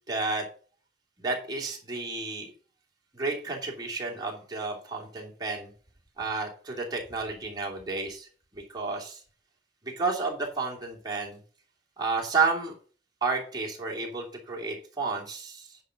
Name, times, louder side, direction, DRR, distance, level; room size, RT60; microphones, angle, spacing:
voice 1, 0.1-0.4 1.2-2.5 3.1-5.7 6.2-8.3 8.5-9.2 9.8-11.4 12.0-12.7 13.2-15.8, right 4 dB, 25° right, -2 dB, 2.8 m, -31 dB
9.9 x 5.3 x 5.2 m, 0.41 s
head